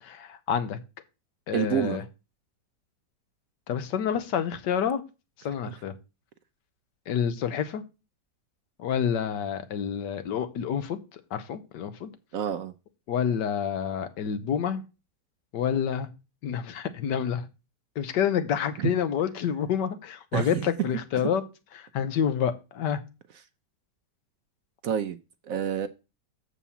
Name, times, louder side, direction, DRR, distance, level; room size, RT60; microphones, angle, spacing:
voice 1, 0.0-0.8 1.5-2.0 3.7-5.0 5.4-5.9 7.1-7.8 8.8-12.1 13.1-14.8 15.5-16.1 16.4-17.4 18.0-21.4 21.8-23.0, left 8 dB, 85° left, 1.5 m, -28 dB
voice 2, 1.5-2.0 5.7-5.8 12.3-12.7 18.8-18.9 20.3-20.7 24.8-25.2 25.5-25.9, right 9 dB, 65° right, 0.9 m, -28 dB
7.2 x 4.7 x 6.9 m
omnidirectional pair, 1.8 m